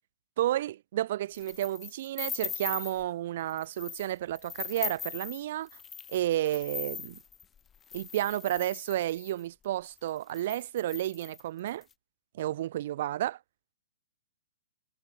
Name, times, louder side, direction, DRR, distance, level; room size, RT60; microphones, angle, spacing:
voice 1, 0.4-5.7 6.1-7.2 7.9-11.8 12.3-13.4, right 13 dB, 55° right, 1.0 m, -31 dB
sound 1, 1.3-3.0 3.5-4.1 4.4-9.4 10.0-10.1 10.3-11.8, left 7 dB, 15° left, 1.3 m, -40 dB
hypercardioid pair, 130°, 0 cm